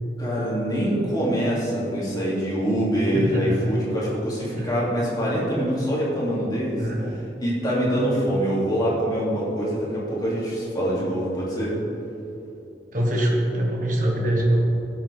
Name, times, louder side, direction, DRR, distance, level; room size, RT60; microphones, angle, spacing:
voice 1, 0.2-11.8, equal, 25° left, -6 dB, 2.7 m, -25 dB
voice 2, 3.1-3.6 4.5-4.7 6.8-7.2 12.9-14.6, right 1 dB, 50° right, -1 dB, 1.5 m, -23 dB
16.5 x 7.6 x 3.5 m, 3.0 s
head